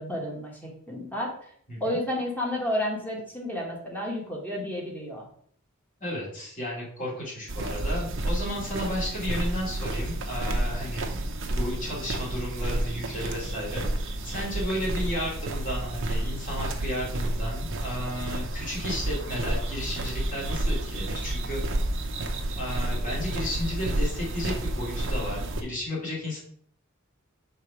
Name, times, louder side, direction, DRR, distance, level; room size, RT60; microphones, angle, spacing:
voice 1, 0.0-1.5 1.8-5.3, left 1 dB, 10° left, -2 dB, 1.5 m, -31 dB
voice 2, 6.0-11.1 11.5-21.6 22.5-26.4, left 1 dB, 40° left, -5 dB, 2.7 m, -33 dB
sound 1, 7.5-25.6, right 1 dB, 65° right, 0.9 m, -30 dB
5.8 x 3.7 x 4.9 m, 0.62 s
head